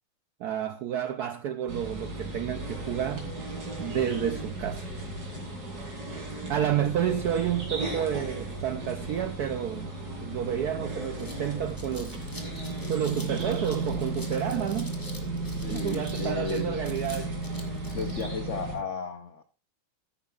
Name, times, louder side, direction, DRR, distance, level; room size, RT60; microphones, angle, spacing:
voice 1, 0.4-3.3 3.8-4.9 6.5-9.9 10.2-12.2 12.9-14.9 15.7-17.3, right 10 dB, 80° right, 0.8 m, -30 dB
sound 1, 1.7-18.8, right 2 dB, 45° right, 3.3 m, -35 dB
sound 2, 10.9-18.2, left 1 dB, 10° left, 1.5 m, -47 dB
voice 2, 15.6-16.8 17.9-19.5, left 5 dB, 80° left, 0.6 m, -34 dB
13.5 x 10.5 x 2.4 m
omnidirectional pair, 2.3 m